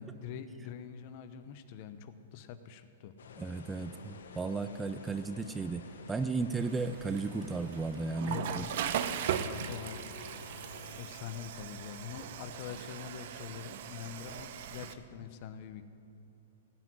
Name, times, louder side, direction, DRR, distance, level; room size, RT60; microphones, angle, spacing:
voice 1, 0.0-3.1 8.2-10.1 11.0-15.8, left 8 dB, 45° left, 11 dB, 0.9 m, -44 dB
sound 1, 3.2-11.0, left 5 dB, 80° left, 1.2 m, -51 dB
voice 2, 3.4-8.7, right 3 dB, 10° right, 11 dB, 0.4 m, -35 dB
Water / Toilet flush, 6.6-14.9, right 9 dB, 55° right, 0.8 m, -39 dB
16.5 x 6.1 x 9.5 m, 2.9 s
hypercardioid pair, 140°, 0 cm